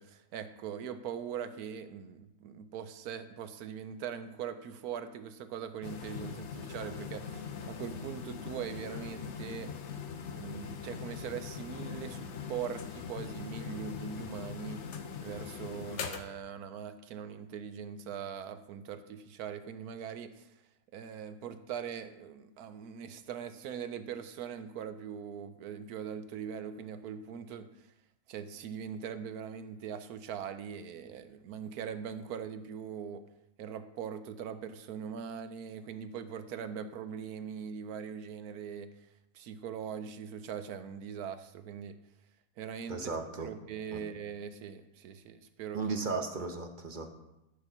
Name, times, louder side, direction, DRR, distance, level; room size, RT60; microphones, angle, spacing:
voice 1, 0.0-9.7 10.3-14.9 15.2-20.5 20.9-27.7 28.3-33.2 33.6-38.9 39.3-42.0 42.6-43.1 43.4-45.8, right 7 dB, 75° right, 11 dB, 1.1 m, -41 dB
sound 1, 5.8-16.2, left 6 dB, 55° left, 0.9 m, -41 dB
voice 2, 42.9-43.5 43.9-44.0 45.7-47.1, right 4 dB, 40° right, 5 dB, 0.8 m, -35 dB
12.5 x 4.2 x 6.0 m, 0.90 s
omnidirectional pair, 1.7 m